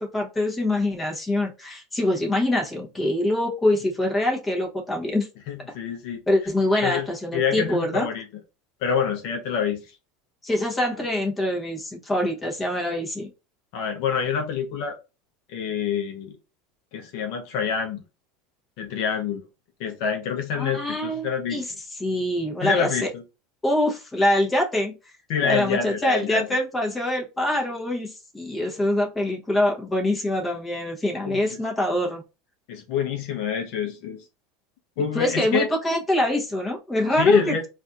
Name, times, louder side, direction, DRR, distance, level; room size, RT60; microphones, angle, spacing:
voice 1, 0.0-5.3 6.3-8.1 10.4-13.3 20.5-21.7 22.0-23.1 23.6-24.9 25.4-32.2 35.0-37.7, left 1 dB, 15° left, 1.0 m, -24 dB
voice 2, 5.5-6.2 6.8-7.1 7.3-8.2 8.8-10.0 13.7-15.0 15.5-16.4 16.9-18.0 18.8-19.4 19.8-21.6 22.6-23.2 25.3-26.5 31.2-31.4 32.7-34.2 35.0-35.7 37.2-37.7, left 7 dB, 65° left, 0.8 m, -26 dB
4.1 x 2.5 x 2.4 m
supercardioid pair, 135°, 0 cm